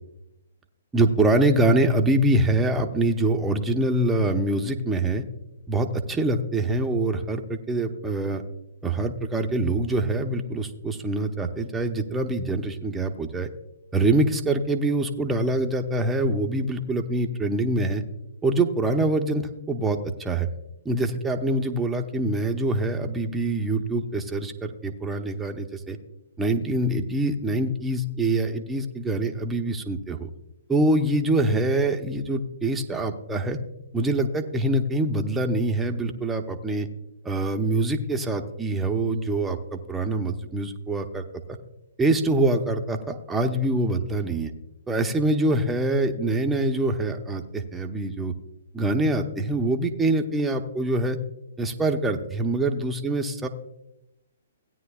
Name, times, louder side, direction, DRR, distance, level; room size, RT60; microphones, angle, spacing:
voice 1, 0.9-5.2 5.7-8.4 8.8-13.5 13.9-18.0 18.4-20.5 20.8-26.0 26.4-30.3 30.7-33.6 33.9-36.9 37.2-41.6 42.0-44.5 44.9-48.3 48.7-51.2 51.6-53.5, right 2 dB, 10° right, 4 dB, 0.7 m, -24 dB
16.5 x 9.4 x 2.4 m, 0.90 s
figure-of-eight pair, 125°, 0 cm